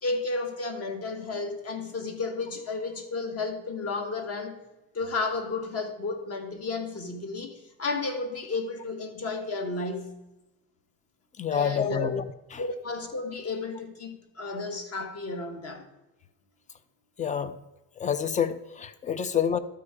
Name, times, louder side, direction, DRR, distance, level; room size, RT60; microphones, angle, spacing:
voice 1, 0.0-4.6 4.9-10.2 11.5-12.1 12.6-15.9 19.2-19.3, left 3 dB, 40° left, 1.2 m, -33 dB
voice 2, 11.4-12.2 17.2-17.6 18.0-19.6, left 7 dB, 20° left, 0.3 m, -27 dB
12.0 x 4.6 x 4.8 m
cardioid pair, 120°, 39 cm